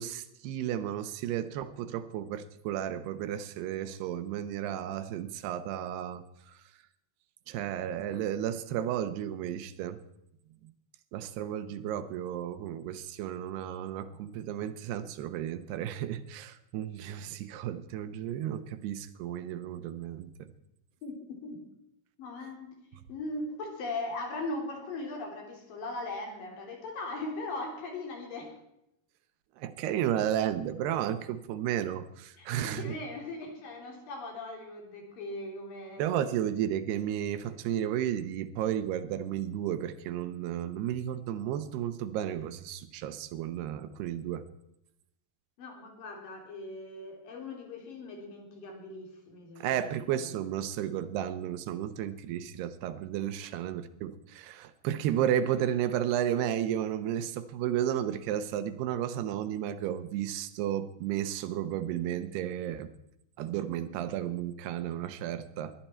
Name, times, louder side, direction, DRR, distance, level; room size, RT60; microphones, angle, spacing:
voice 1, 0.0-6.2 7.5-10.0 11.1-20.5 29.6-33.0 36.0-44.5 49.6-62.9 63.4-65.7, right 10 dB, 80° right, 11 dB, 3.0 m, -33 dB
voice 2, 21.0-21.6 22.2-22.8 23.1-28.5 32.4-36.0 45.6-50.0 53.4-53.5, left 2 dB, 60° left, 2 dB, 4.9 m, -39 dB
20.5 x 12.5 x 4.5 m, 0.82 s
omnidirectional pair, 4.7 m